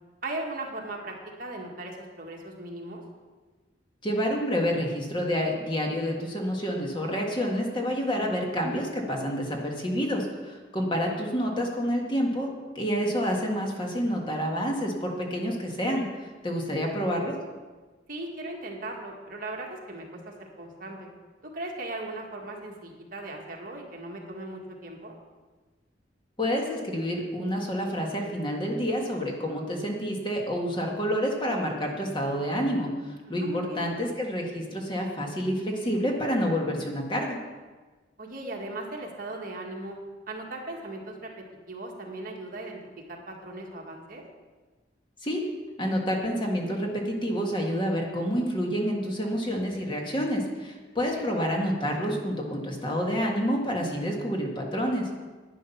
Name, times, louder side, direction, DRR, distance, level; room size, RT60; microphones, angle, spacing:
voice 1, 0.2-3.0 10.8-10.9 11.1-11.3 18.1-21.1 21.5-25.1 33.3-33.9 38.2-40.0 40.3-41.3 41.7-42.8 43.1-44.2 51.1-51.3, right 2 dB, 50° right, 0 dB, 1.9 m, -38 dB
voice 2, 4.0-16.1 16.4-17.4 26.4-37.4 45.2-45.4 45.8-55.1, equal, 25° left, 0 dB, 1.6 m, -28 dB
11.0 x 10.0 x 5.8 m, 1.3 s
head